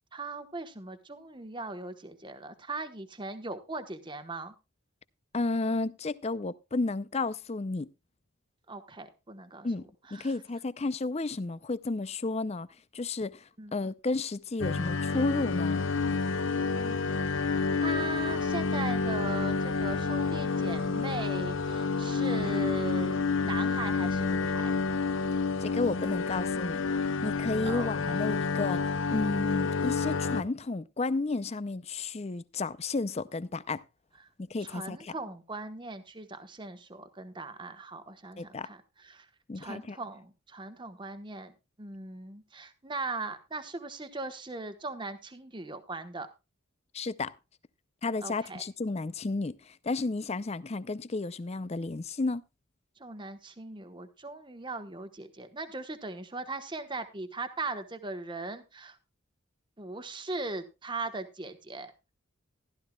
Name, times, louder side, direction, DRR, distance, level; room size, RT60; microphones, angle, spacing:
voice 1, 0.1-4.5 8.7-9.7 10.1-10.3 13.6-13.8 16.8-17.1 17.8-24.7 27.6-28.2 34.6-39.3 39.6-41.5 41.8-46.3 48.2-48.6 53.0-59.0 59.8-61.9, right 3 dB, 20° right, 1.1 m, -39 dB
voice 2, 5.3-7.9 9.6-12.7 12.9-13.4 13.7-15.8 25.6-26.8 27.2-28.8 29.1-33.8 34.4-35.1 38.4-38.7 39.5-40.0 46.9-47.3 48.0-52.4, left 3 dB, 30° left, 0.5 m, -32 dB
sound 1, 14.6-30.4, left 4 dB, 65° left, 0.8 m, -29 dB
15.0 x 12.5 x 2.3 m
head